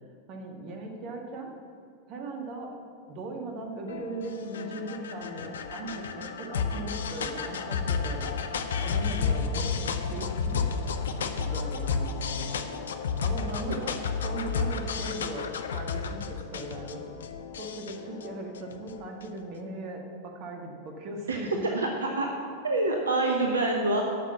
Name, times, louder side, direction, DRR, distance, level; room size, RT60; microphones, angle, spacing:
voice 1, 0.3-1.5 2.1-2.8 3.1-8.4 8.8-10.6 11.1-12.7 13.2-15.5 15.7-17.1 17.6-21.9, right 1 dB, 40° right, 2 dB, 1.7 m, -38 dB
sound 1, 3.9-19.4, left 5 dB, 65° left, 0.6 m, -32 dB
voice 2, 21.7-22.3 22.6-24.0, right 2 dB, 70° right, 1 dB, 0.9 m, -26 dB
9.9 x 6.4 x 6.9 m, 2.3 s
figure-of-eight pair, 90°, 0 cm